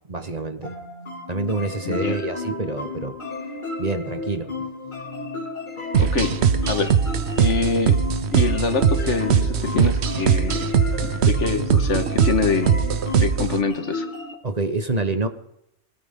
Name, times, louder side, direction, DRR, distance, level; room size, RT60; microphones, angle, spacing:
voice 1, 0.1-0.8 1.3-3.2 3.8-4.5 14.4-15.3, right 3 dB, 35° right, 9 dB, 1.2 m, -27 dB
sound 1, 0.6-14.3, left 3 dB, 45° left, 3.0 m, -32 dB
voice 2, 1.9-2.2 6.0-6.4 6.7-7.0 7.4-8.0 8.3-10.7 11.0-12.8 13.2-14.1, left 4 dB, 80° left, 8 dB, 1.8 m, -25 dB
sound 2, 5.9-13.6, right 7 dB, 65° right, 1.1 m, -21 dB
20.5 x 19.0 x 3.7 m, 0.78 s
omnidirectional pair, 1.2 m